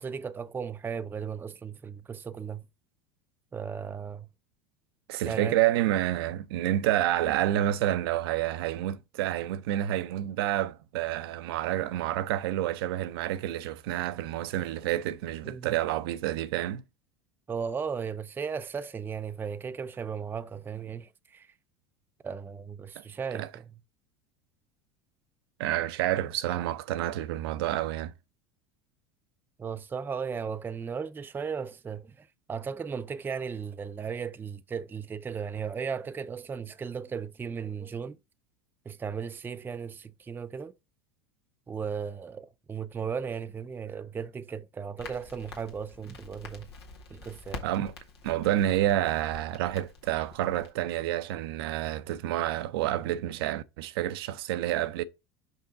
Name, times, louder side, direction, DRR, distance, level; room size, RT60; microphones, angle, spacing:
voice 1, 0.0-2.6 3.5-4.3 5.3-5.6 15.4-15.7 17.5-21.5 22.2-23.7 29.6-38.2 38.9-40.7 41.7-46.7 47.1-47.7, right 6 dB, 15° right, 0.4 m, -36 dB
voice 2, 5.1-16.8 23.0-23.1 23.3-23.5 25.6-28.1 47.6-47.9 48.2-55.0, right 13 dB, 70° right, 0.5 m, -29 dB
Crackle, 45.0-50.7, left 3 dB, 90° left, 1.6 m, -47 dB
5.4 x 5.0 x 3.9 m
hypercardioid pair, 85°, 13 cm